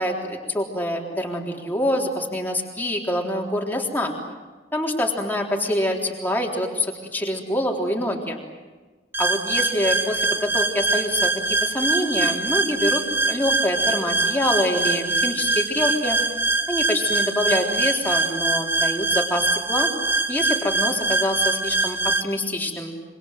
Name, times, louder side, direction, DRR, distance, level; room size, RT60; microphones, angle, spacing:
voice 1, 0.0-4.1 4.7-8.4 9.2-16.2 16.7-19.9 20.3-22.9, left 1 dB, 10° left, 0 dB, 3.7 m, -25 dB
sound 1, 9.1-22.2, right 2 dB, 10° right, 0.9 m, -23 dB
27.0 x 25.0 x 8.0 m, 1.3 s
head